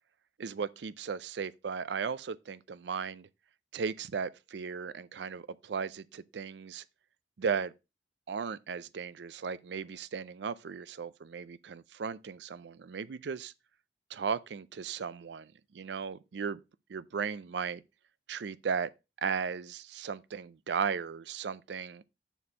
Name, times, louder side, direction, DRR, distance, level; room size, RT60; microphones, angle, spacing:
voice 1, 0.4-3.3 3.7-6.8 7.4-7.7 8.3-13.5 14.1-16.6 16.9-17.8 18.3-18.9 19.2-22.0, right 6 dB, 75° right, 0.4 m, -36 dB
7.0 x 4.3 x 4.8 m
head